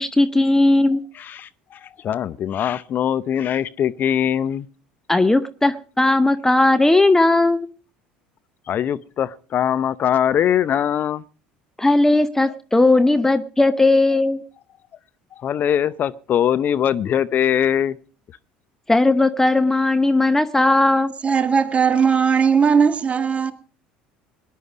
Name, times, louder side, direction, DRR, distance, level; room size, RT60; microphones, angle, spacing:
voice 1, 0.0-1.0 5.1-7.7 11.8-14.4 18.9-21.1, left 2 dB, 10° left, 0.9 m, -17 dB
voice 2, 1.1-4.7 8.7-11.2 15.4-18.0, left 9 dB, 45° left, 0.7 m, -22 dB
voice 3, 21.2-23.5, right 6 dB, 30° right, 1.9 m, -18 dB
19.0 x 11.0 x 5.1 m
hypercardioid pair, 65°, 5 cm